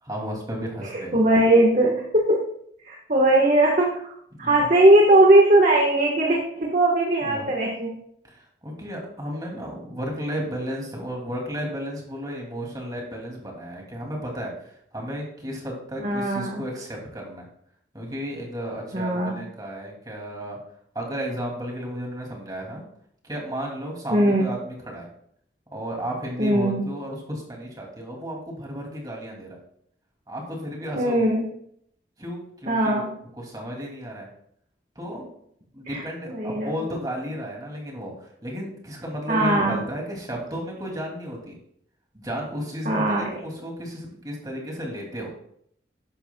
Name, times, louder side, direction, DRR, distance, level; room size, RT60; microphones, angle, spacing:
voice 1, 0.0-1.5 4.3-4.7 7.2-7.5 8.3-17.5 17.9-20.6 20.9-22.8 23.2-25.1 25.7-29.6 30.3-31.3 32.2-33.1 33.4-34.3 34.9-35.3 35.7-41.6 42.1-45.3, equal, 20° right, -1 dB, 2.8 m, -33 dB
voice 2, 0.8-2.3 2.8-8.0 16.0-16.6 18.9-19.4 24.1-24.5 26.4-26.8 31.0-31.5 32.7-33.1 35.9-36.7 39.3-39.8 42.8-43.3, right 1 dB, 40° right, -1 dB, 1.5 m, -20 dB
12.5 x 9.9 x 2.4 m, 0.68 s
head